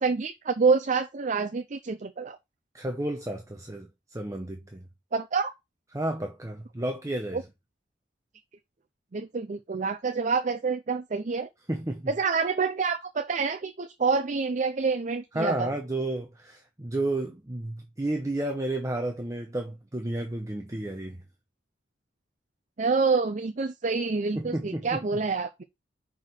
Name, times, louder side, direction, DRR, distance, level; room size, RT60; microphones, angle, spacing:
voice 1, 0.0-2.4 5.1-5.5 7.3-7.4 9.1-11.5 12.1-15.7 22.8-25.6, right 4 dB, 45° right, 0.5 m, -27 dB
voice 2, 2.7-4.8 5.9-7.4 11.7-12.1 15.3-21.2 24.4-25.0, right 1 dB, 20° right, 0.8 m, -32 dB
5.9 x 4.5 x 4.5 m
head